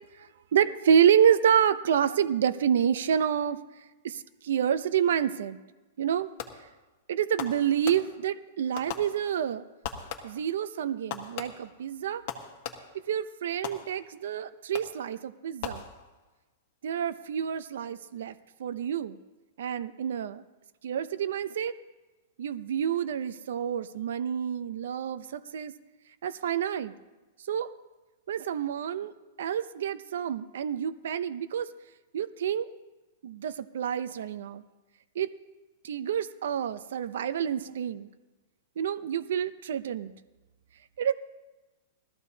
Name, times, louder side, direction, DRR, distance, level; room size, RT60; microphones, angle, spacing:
voice 1, 0.2-3.6 4.0-5.6 6.0-6.3 7.1-9.6 10.2-12.2 13.1-15.8 16.8-18.3 18.6-19.2 19.6-20.4 20.8-21.7 22.4-25.7 26.2-26.9 27.5-27.7 28.3-29.1 29.4-31.7 32.1-32.7 33.2-34.6 35.2-35.3 35.8-38.1 38.8-40.1 41.0-41.1, right 8 dB, 75° right, 12 dB, 0.6 m, -28 dB
Fireworks, 6.4-6.8 7.4-8.4 8.8-9.5 9.8-10.5 11.1-13.1 13.6-14.3 14.7-15.1 15.6-16.4, left 8 dB, 45° left, 1.4 m, -40 dB
20.0 x 14.0 x 2.8 m, 1.2 s
supercardioid pair, 160°, 0 cm